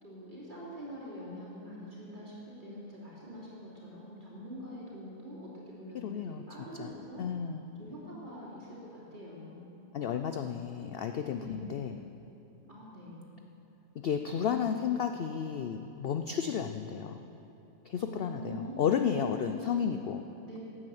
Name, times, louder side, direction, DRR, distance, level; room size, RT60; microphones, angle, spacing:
voice 1, 0.0-7.2 7.8-9.7 11.4-11.7 12.7-13.2 18.1-20.6, equal, 35° right, -7 dB, 3.0 m, -45 dB
voice 2, 6.0-6.4 6.8-6.9 7.2-7.6 9.9-12.0 14.0-17.2 17.9-20.2, left 7 dB, 65° left, 7 dB, 0.6 m, -32 dB
12.5 x 8.7 x 7.7 m, 2.9 s
omnidirectional pair, 1.5 m